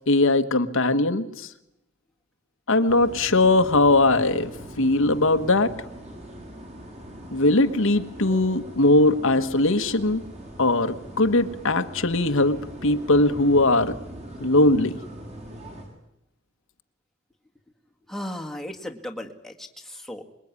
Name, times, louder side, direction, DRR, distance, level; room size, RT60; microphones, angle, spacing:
voice 1, 0.1-1.5 2.7-5.7 7.3-10.2 10.6-13.9 14.4-15.0, left 2 dB, 65° left, 9 dB, 1.4 m, -20 dB
sound 1, 2.9-15.9, equal, 35° right, 7.5 m, -41 dB
voice 2, 18.1-20.2, left 1 dB, ahead, 1 dB, 2.0 m, -36 dB
26.0 x 22.0 x 9.7 m, 0.87 s
head